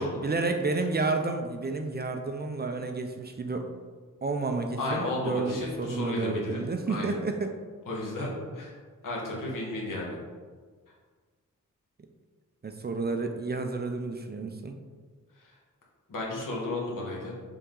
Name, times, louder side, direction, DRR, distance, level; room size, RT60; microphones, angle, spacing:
voice 1, 0.0-3.7 4.2-7.5 12.6-14.7, right 3 dB, 30° right, 5 dB, 0.4 m, -31 dB
voice 2, 4.8-6.6 6.9-7.2 7.8-8.7 9.0-10.2 15.4-15.6 16.1-17.4, left 2 dB, 80° left, -3 dB, 1.6 m, -33 dB
6.9 x 3.6 x 3.8 m, 1.5 s
wide cardioid pair, 155°, 32 cm